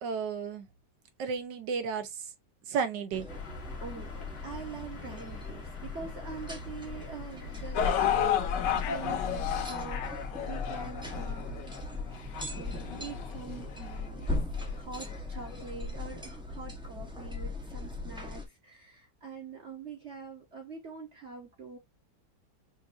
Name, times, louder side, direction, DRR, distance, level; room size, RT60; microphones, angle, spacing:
voice 1, 0.0-0.7 1.2-2.1 2.7-3.3, right 6 dB, 80° right, 1.5 m, -32 dB
sound 1, 3.1-18.5, left 2 dB, 5° right, 0.5 m, -39 dB
sound 2, 3.3-9.6, left 6 dB, 70° left, 1.8 m, -40 dB
voice 2, 3.8-8.1 8.6-11.8 12.5-14.3 14.7-21.8, right 5 dB, 45° right, 1.1 m, -45 dB
sound 3, 7.7-14.0 14.7-14.8 15.5-15.6, left 8 dB, 85° left, 1.3 m, -32 dB
5.9 x 2.6 x 2.5 m
omnidirectional pair, 1.9 m